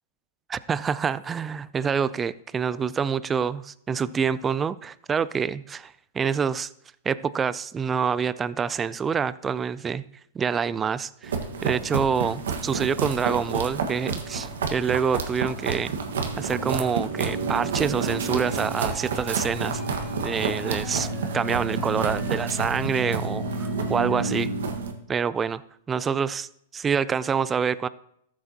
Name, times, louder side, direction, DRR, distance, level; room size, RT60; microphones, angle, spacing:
voice 1, 0.5-6.7 7.1-10.0 10.3-16.0 16.4-19.8 20.2-21.1 21.3-24.5 25.1-25.6 25.9-27.9, right 6 dB, 15° right, 0.3 m, -26 dB
sound 1, 11.2-24.9, right 4 dB, 85° right, 1.4 m, -29 dB
sound 2, 18.3-24.2, right 1 dB, 15° left, 1.4 m, -43 dB
14.0 x 7.7 x 2.8 m
hypercardioid pair, 140°, 0 cm